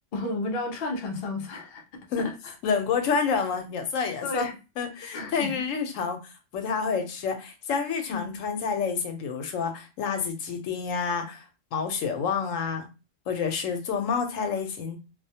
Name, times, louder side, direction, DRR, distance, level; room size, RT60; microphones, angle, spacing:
voice 1, 0.1-1.8 2.2-2.3 4.2-4.5 5.1-5.5 8.1-8.4, left 2 dB, 55° left, 0.6 m, -32 dB
voice 2, 2.6-4.5 4.8-11.4 11.7-12.9 13.3-15.0, left 6 dB, 85° left, 1.0 m, -28 dB
2.4 x 2.0 x 2.7 m
omnidirectional pair, 1.3 m